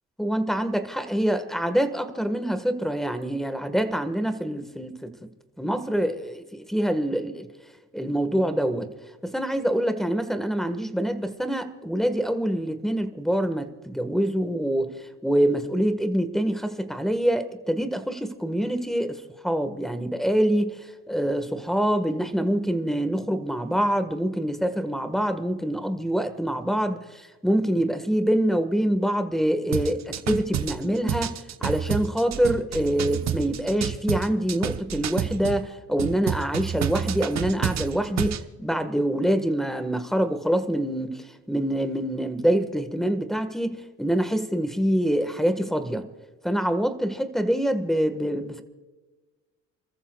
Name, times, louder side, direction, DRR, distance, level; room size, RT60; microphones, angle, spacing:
voice 1, 0.2-5.1 5.6-7.5 7.9-8.9 9.2-14.9 15.2-20.8 21.1-31.4 31.6-46.1 46.4-48.6, right 1 dB, ahead, 1.6 m, -25 dB
sound 1, 29.7-35.6 36.0-38.4, right 9 dB, 60° right, 1.1 m, -29 dB
29.5 x 14.0 x 2.4 m
cardioid pair, 90°, 30 cm